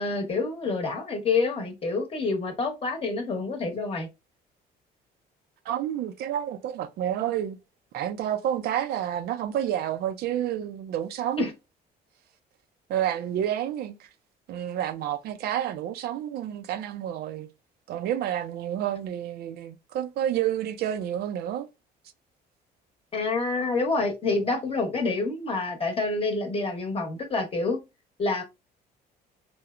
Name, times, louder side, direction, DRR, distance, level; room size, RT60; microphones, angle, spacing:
voice 1, 0.0-4.1 11.4-11.5 23.1-27.8 28.2-28.4, left 3 dB, 35° left, 0.9 m, -27 dB
voice 2, 5.7-7.6 7.9-11.5 12.9-14.1 14.5-17.5 17.9-21.7, right 11 dB, 70° right, 0.4 m, -29 dB
2.9 x 2.0 x 2.4 m
cardioid pair, 110°, 17 cm